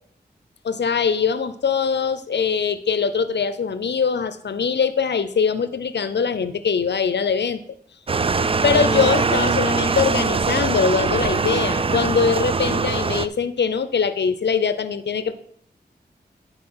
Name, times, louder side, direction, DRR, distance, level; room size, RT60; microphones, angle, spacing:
voice 1, 0.6-7.6 8.6-15.3, left 6 dB, 85° left, 13 dB, 0.6 m, -22 dB
sound 1, 8.1-13.3, right 4 dB, 35° right, 0.3 m, -22 dB
10.0 x 4.8 x 5.5 m, 0.64 s
wide cardioid pair, 65°, 17 cm